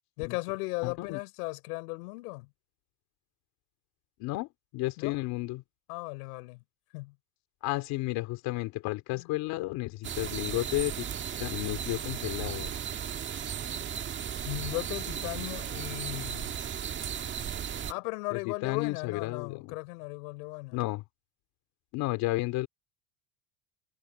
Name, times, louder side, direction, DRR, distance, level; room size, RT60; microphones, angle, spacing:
voice 1, 0.2-2.5 5.0-5.4 5.9-6.6 6.9-7.2 9.1-9.3 14.5-16.6 17.9-20.8, left 27 dB, 80° left, 5.6 m, -37 dB
voice 2, 0.8-1.2 4.2-4.5 4.7-5.6 7.6-11.1 11.4-12.7 18.3-19.7 20.7-21.0 21.9-22.7, left 19 dB, 50° left, 2.8 m, -32 dB
sound 1, 10.0-17.9, right 8 dB, 25° right, 1.8 m, -35 dB
cardioid pair, 165°, 45 cm